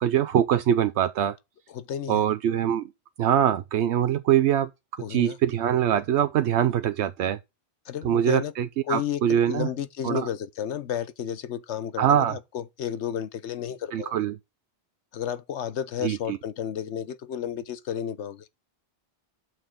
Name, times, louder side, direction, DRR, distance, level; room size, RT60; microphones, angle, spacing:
voice 1, 0.0-1.4 2.1-2.9 3.2-4.7 5.1-7.4 8.0-9.7 10.0-10.3 12.0-12.4 13.9-14.4 16.0-16.4, right 10 dB, 80° right, 0.9 m, -23 dB
voice 2, 1.7-2.2 5.0-5.4 7.9-8.5 8.9-14.1 15.1-18.5, left 9 dB, 80° left, 1.1 m, -32 dB
8.0 x 6.3 x 3.7 m
omnidirectional pair, 1.1 m